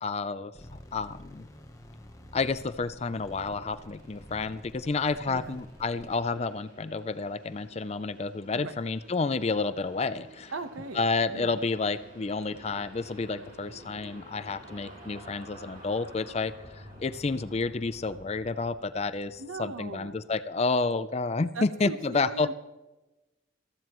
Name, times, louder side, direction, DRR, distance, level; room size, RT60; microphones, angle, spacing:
voice 1, 0.0-0.5 0.9-1.5 2.3-10.5 11.0-22.5, left 3 dB, 30° left, 13 dB, 0.4 m, -30 dB
sound 1, 0.5-6.2, left 1 dB, 15° left, 1.0 m, -49 dB
sound 2, 0.8-20.4, right 1 dB, 40° right, 4.9 m, -52 dB
voice 2, 5.2-5.6 8.5-8.7 10.5-11.0 11.3-11.6 19.4-20.2 21.5-22.5, right 3 dB, 85° right, 10 dB, 1.0 m, -39 dB
21.0 x 14.5 x 3.1 m, 1.1 s
head